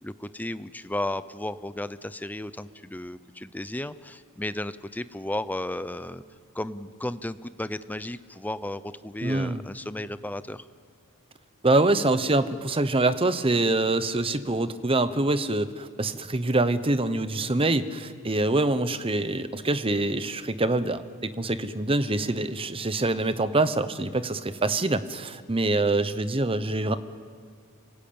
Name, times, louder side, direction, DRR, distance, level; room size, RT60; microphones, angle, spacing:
voice 1, 0.0-6.2 6.5-10.6, left 1 dB, 5° left, 14 dB, 0.6 m, -34 dB
voice 2, 9.2-9.6 11.6-21.0 21.4-27.0, right 2 dB, 25° right, 12 dB, 0.9 m, -25 dB
29.5 x 17.5 x 8.8 m, 2.1 s
head